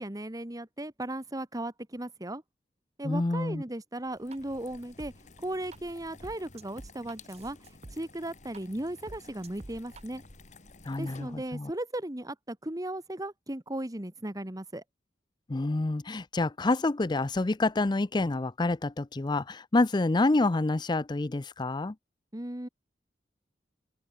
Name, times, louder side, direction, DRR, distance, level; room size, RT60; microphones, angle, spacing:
voice 1, 0.0-2.4 3.0-5.1 5.4-7.6 7.9-10.2 11.0-14.8 22.3-22.7, right 1 dB, 20° right, 1.6 m, -36 dB
voice 2, 3.0-3.6 10.9-11.7 15.5-21.9, left 2 dB, 25° left, 0.5 m, -28 dB
sound 1, 4.1-11.7, left 2 dB, 45° left, 3.1 m, -53 dB
sound 2, 4.1-4.4 5.0-5.1 5.7-5.8 6.2-8.0 8.5-8.6 9.1-10.0, right 2 dB, 40° right, 0.9 m, -46 dB
open air
head